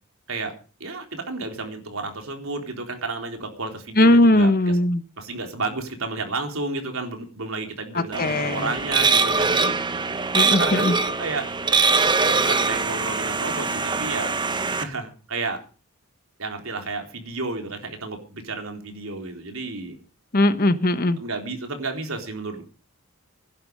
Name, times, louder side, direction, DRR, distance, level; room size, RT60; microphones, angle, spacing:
voice 1, 0.8-4.5 5.2-10.1 10.5-11.5 12.2-14.4 14.7-15.6 16.4-20.0 21.2-22.6, right 3 dB, 70° right, 4 dB, 3.8 m, -31 dB
voice 2, 4.0-5.0 7.9-8.7 10.3-10.9 20.3-21.2, left 1 dB, 40° left, 11 dB, 1.2 m, -19 dB
sound 1, 8.1-14.8, right 4 dB, 20° right, 1.0 m, -22 dB
16.0 x 11.5 x 5.4 m, 0.37 s
head